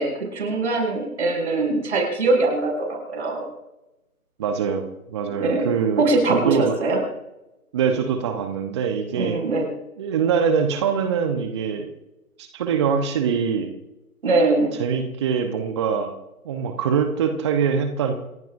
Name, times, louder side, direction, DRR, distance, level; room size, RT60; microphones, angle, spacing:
voice 1, 0.0-3.5 5.4-5.7 6.0-7.0 9.1-9.7 14.2-14.8, right 2 dB, 50° right, 1 dB, 6.2 m, -22 dB
voice 2, 4.4-4.8 5.1-6.0 6.3-6.7 7.7-9.4 10.0-11.9 12.4-13.7 14.8-16.1 16.4-18.1, right 6 dB, 20° right, 6 dB, 1.0 m, -23 dB
28.5 x 16.5 x 2.7 m, 0.96 s
figure-of-eight pair, 145°, 44 cm